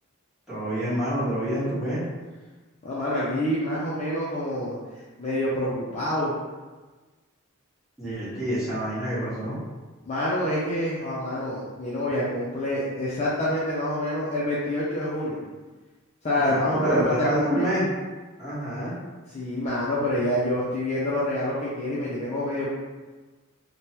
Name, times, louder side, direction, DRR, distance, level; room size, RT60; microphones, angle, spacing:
voice 1, 0.5-2.0 8.0-9.6 16.4-17.8 18.4-18.9, equal, ahead, -13 dB, 1.3 m, -27 dB
voice 2, 2.8-4.8 5.2-6.3 10.1-15.4 16.2-17.7 19.3-22.7, left 1 dB, 30° left, -7 dB, 0.5 m, -27 dB
3.2 x 2.2 x 2.8 m, 1.3 s
head